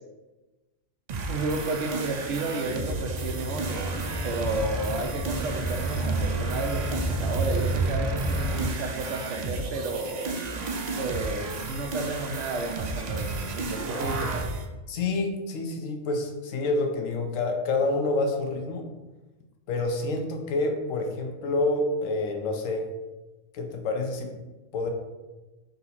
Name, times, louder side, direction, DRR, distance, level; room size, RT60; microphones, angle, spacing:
sound 1, 1.1-14.6, right 3 dB, 90° right, 0.3 m, -33 dB
voice 1, 1.3-3.9 4.2-10.4 11.0-14.4, right 2 dB, 70° right, 4 dB, 0.9 m, -32 dB
sound 2, 2.8-8.7, right 1 dB, 5° right, 0.5 m, -30 dB
voice 2, 14.9-18.8 19.7-22.9 23.5-24.3 24.7-24.9, left 2 dB, 80° left, 3 dB, 1.0 m, -28 dB
3.9 x 2.8 x 4.0 m, 1.1 s
omnidirectional pair, 1.3 m